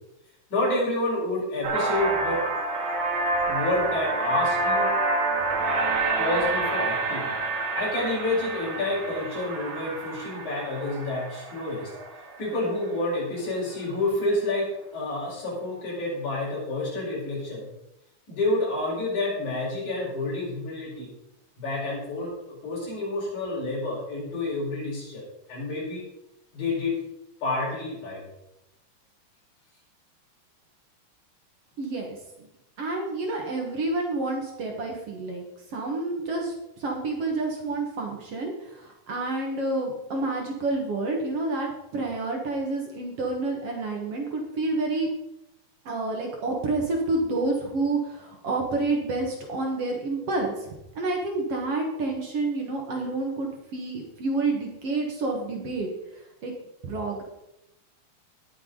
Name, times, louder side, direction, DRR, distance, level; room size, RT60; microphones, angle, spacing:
voice 1, 0.5-2.4 3.5-4.9 6.2-7.3 7.7-11.9 12.4-17.7 18.3-21.1 21.6-22.3 22.6-25.2 25.5-26.0 26.5-27.0 27.4-28.2, left 2 dB, 70° left, -4 dB, 6.3 m, -29 dB
sound 1, 1.6-13.2, right 3 dB, 75° right, 3.5 m, -28 dB
voice 2, 31.8-32.2 32.8-36.5 36.8-45.1 45.9-50.7 51.0-55.9 56.4-56.5 56.8-57.2, right 2 dB, 55° right, 1 dB, 2.4 m, -29 dB
19.0 x 7.1 x 4.0 m, 0.87 s
omnidirectional pair, 3.6 m